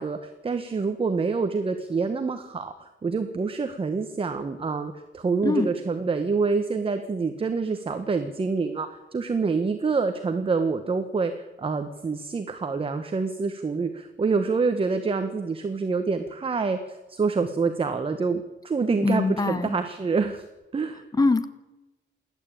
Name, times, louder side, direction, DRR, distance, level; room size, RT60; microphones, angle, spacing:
voice 1, 0.0-20.5 20.7-21.1, right 4 dB, 30° right, 7 dB, 1.4 m, -27 dB
voice 2, 19.0-19.8 21.2-21.4, left 3 dB, 20° left, 13 dB, 1.1 m, -22 dB
29.0 x 11.5 x 8.8 m, 1.1 s
wide cardioid pair, 160°, 20 cm